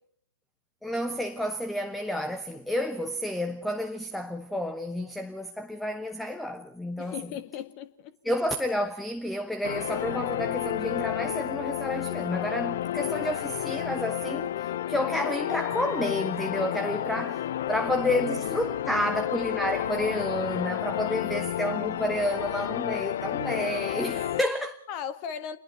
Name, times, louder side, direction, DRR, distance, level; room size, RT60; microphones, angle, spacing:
voice 1, 0.8-7.1 8.2-24.8, left 1 dB, ahead, 1.0 m, -30 dB
voice 2, 7.0-8.1 17.7-18.1 24.9-25.6, left 8 dB, 35° left, 1.7 m, -38 dB
sound 1, 9.6-24.4, left 11 dB, 55° left, 0.8 m, -31 dB
28.5 x 22.0 x 4.4 m
figure-of-eight pair, 115°, 0 cm